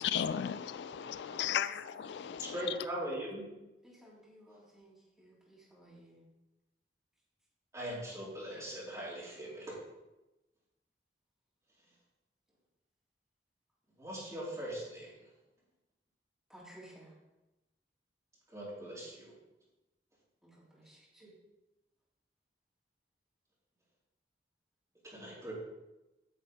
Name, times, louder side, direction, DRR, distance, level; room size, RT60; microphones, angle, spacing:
voice 1, 0.0-2.9, left 9 dB, 75° left, 0.3 m, -35 dB
voice 2, 2.5-3.5 7.7-9.7 14.0-15.1 18.5-19.3 21.2-21.3 25.0-25.5, right 1 dB, 20° right, 3.6 m, -40 dB
voice 3, 3.8-6.3 16.5-17.1 20.4-21.2, right 1 dB, ahead, 3.3 m, -56 dB
9.9 x 6.4 x 4.2 m
head